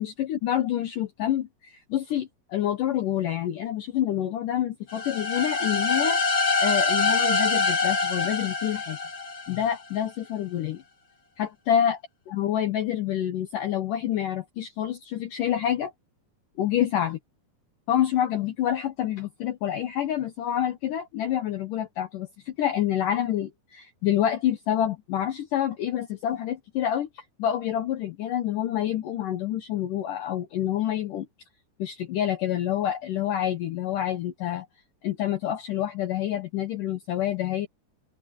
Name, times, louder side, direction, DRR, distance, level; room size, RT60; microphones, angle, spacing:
voice 1, 0.0-6.3 6.6-9.0 9.5-10.8 11.4-12.0 12.3-15.9 16.6-17.2 17.9-31.3 31.8-34.7 35.0-37.7, left 11 dB, 70° left, 2.2 m, -27 dB
sound 1, 4.9-9.7, left 4 dB, 20° left, 2.5 m, -25 dB
open air
omnidirectional pair, 4.8 m